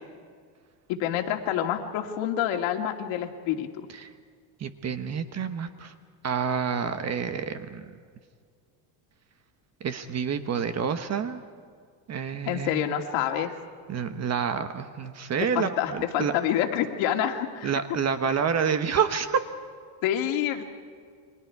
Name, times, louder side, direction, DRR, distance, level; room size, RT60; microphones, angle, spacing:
voice 1, 0.9-3.9 12.4-13.5 15.5-17.7 18.3-18.4 20.0-20.6, left 10 dB, 65° left, 3 dB, 2.6 m, -27 dB
voice 2, 4.6-5.9 6.2-7.8 9.8-11.4 12.1-12.9 13.9-16.3 17.6-19.4, right 6 dB, 30° right, 10 dB, 1.3 m, -28 dB
30.0 x 24.0 x 4.8 m, 2.1 s
cardioid pair, 145°, 49 cm